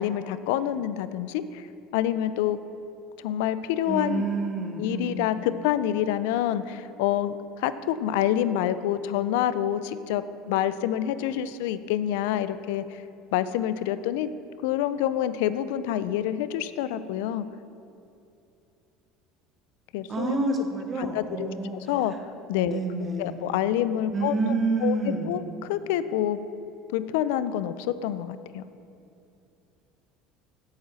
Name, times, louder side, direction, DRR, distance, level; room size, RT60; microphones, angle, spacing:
voice 1, 0.0-1.7 1.9-2.6 3.2-4.2 4.8-12.8 13.3-14.3 14.6-17.5 19.9-20.4 21.0-22.1 22.5-22.8 23.2-24.5 24.8-25.0 25.3-26.4 26.9-28.6, left 11 dB, 85° left, 14 dB, 0.4 m, -27 dB
voice 2, 3.9-5.3 20.1-21.8 22.6-23.3 24.1-25.4, right 3 dB, 25° right, 3 dB, 0.9 m, -28 dB
7.9 x 7.9 x 4.1 m, 2.7 s
cardioid pair, 150°, 0 cm